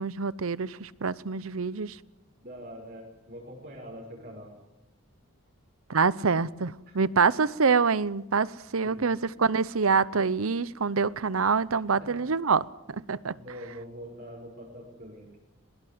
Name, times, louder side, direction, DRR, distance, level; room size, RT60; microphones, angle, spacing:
voice 1, 0.0-2.0 5.9-13.3, right 5 dB, 75° right, 0.8 m, -26 dB
voice 2, 2.4-4.5 6.9-7.1 8.8-9.1 11.9-12.3 13.4-15.3, equal, 45° right, 6.0 m, -44 dB
23.0 x 21.0 x 7.9 m
head